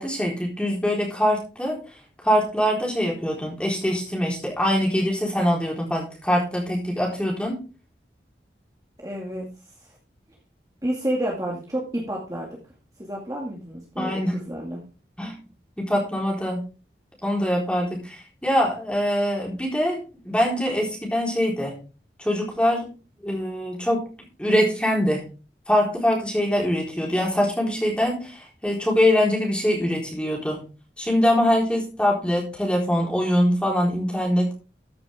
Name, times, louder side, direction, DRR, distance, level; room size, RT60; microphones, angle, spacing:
voice 1, 0.0-1.8 2.2-7.5 14.0-14.3 15.2-15.4 15.8-16.6 17.2-20.0 20.2-21.8 22.2-22.9 23.2-24.1 24.4-25.2 25.7-30.6 31.0-34.5, equal, 5° left, -2 dB, 4.1 m, -23 dB
voice 2, 9.0-9.5 9.8-9.9 10.8-12.5 13.0-14.8, right 1 dB, 20° right, -3 dB, 2.3 m, -30 dB
14.5 x 6.8 x 3.6 m, 0.33 s
head